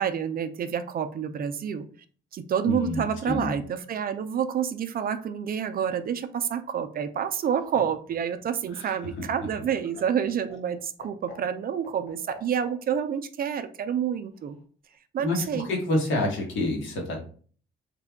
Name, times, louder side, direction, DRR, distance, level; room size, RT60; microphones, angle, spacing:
voice 1, 0.0-1.9 2.3-14.6 15.1-15.7, right 8 dB, 50° right, 10 dB, 0.4 m, -28 dB
voice 2, 2.6-3.5 8.8-8.9 9.2-9.3 15.2-17.2, left 2 dB, 75° left, 0 dB, 1.2 m, -28 dB
Laughter, 7.3-13.0 14.3-15.0, left 2 dB, 55° left, 1.3 m, -49 dB
3.3 x 2.2 x 3.5 m, 0.43 s
cardioid pair, 90°, 20 cm